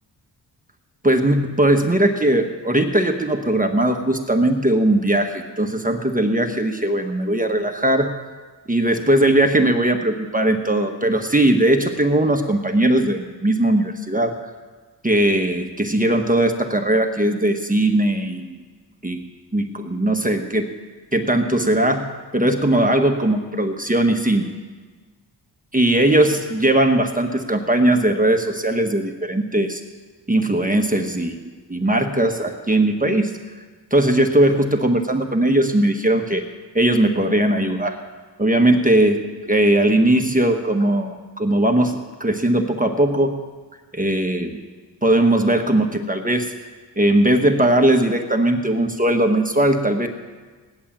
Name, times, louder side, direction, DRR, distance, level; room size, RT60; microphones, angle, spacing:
voice 1, 1.0-8.2 8.7-14.4 15.0-18.6 19.0-19.2 19.5-20.7 21.1-24.5 25.7-29.8 30.3-31.4 31.7-33.4 33.9-36.5 36.7-38.0 38.4-43.4 43.9-44.6 45.0-46.5 47.0-50.1, right 1 dB, 20° right, 4 dB, 1.1 m, -19 dB
16.5 x 11.0 x 7.3 m, 1.4 s
wide cardioid pair, 85°, 41 cm